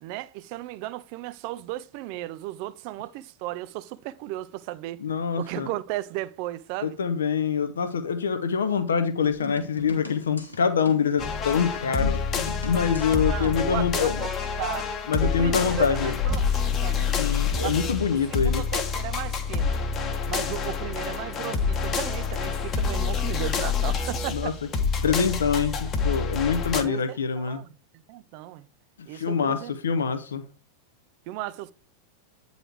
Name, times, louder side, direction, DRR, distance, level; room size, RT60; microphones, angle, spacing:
voice 1, 0.0-5.0 5.4-7.0 13.3-14.9 15.2-17.2 17.6-17.8 18.3-19.7 20.3-24.6 25.3-25.4 26.8-27.8 28.1-28.7 29.1-29.7 31.3-31.7, right 16 dB, 45° right, 0.4 m, -35 dB
voice 2, 5.0-5.7 6.8-12.2 12.6-14.3 15.1-16.1 17.2-18.6 24.3-24.5 25.0-27.6 29.1-30.4, left 6 dB, 65° left, 0.7 m, -25 dB
sound 1, 9.2-14.3, left 4 dB, 85° left, 1.3 m, -39 dB
sound 2, 11.2-26.8, left 5 dB, 30° left, 1.0 m, -27 dB
8.9 x 4.0 x 4.6 m
figure-of-eight pair, 90°, 0 cm